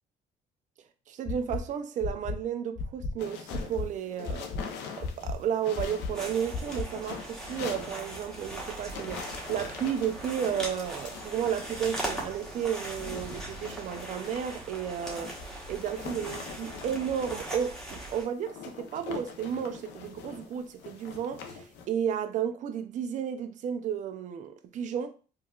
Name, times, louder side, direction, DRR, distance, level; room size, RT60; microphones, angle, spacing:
voice 1, 1.1-4.5 5.0-15.4 15.7-25.1, right 8 dB, 50° right, 0.4 m, -33 dB
sound 1, 1.3-1.6 2.0-2.3 2.8-3.1 3.5-3.8 4.3-4.6 5.0-5.3 5.8-6.1 6.5-6.8, left 4 dB, 35° left, 0.6 m, -32 dB
sound 2, 3.2-21.9, left 6 dB, 85° left, 0.6 m, -44 dB
sound 3, 6.1-18.2, right 1 dB, 5° left, 1.0 m, -40 dB
4.5 x 2.3 x 2.3 m
cardioid pair, 110°, 17 cm